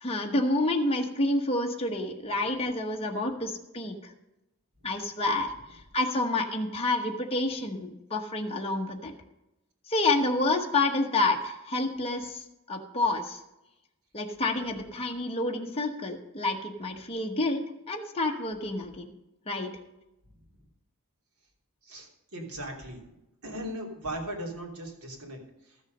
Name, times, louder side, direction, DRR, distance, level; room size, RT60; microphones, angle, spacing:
voice 1, 0.0-4.0 4.8-9.1 9.9-13.4 14.1-19.1 19.5-19.7, left 2 dB, 25° left, 1 dB, 1.1 m, -29 dB
voice 2, 21.8-23.1 23.4-25.8, right 1 dB, 80° right, 0 dB, 3.1 m, -39 dB
13.5 x 7.1 x 5.3 m, 0.93 s
head